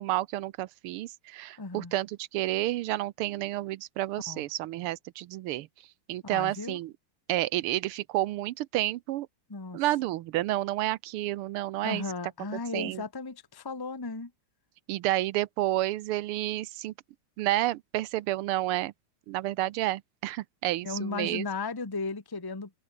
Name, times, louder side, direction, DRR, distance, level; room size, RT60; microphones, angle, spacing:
voice 1, 0.0-5.7 6.1-6.9 7.3-9.3 9.7-12.0 12.5-13.0 14.9-16.9 17.4-18.9 19.3-21.4, right 15 dB, 90° right, 1.6 m, -30 dB
voice 2, 1.6-1.9 4.3-4.4 6.2-6.8 9.5-9.8 11.8-14.3 20.8-22.7, left 3 dB, 15° left, 1.2 m, -35 dB
omnidirectional pair, 2.4 m